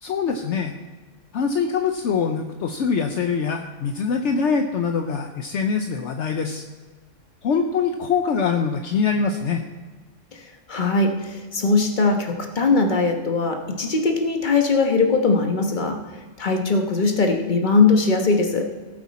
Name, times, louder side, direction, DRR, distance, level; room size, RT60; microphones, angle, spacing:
voice 1, 0.0-0.7 1.3-6.6 7.4-9.6, left 5 dB, 65° left, 5 dB, 1.0 m, -23 dB
voice 2, 10.7-16.0 16.4-18.7, left 3 dB, 40° left, 4 dB, 1.4 m, -20 dB
18.0 x 7.8 x 4.2 m, 1.4 s
omnidirectional pair, 1.3 m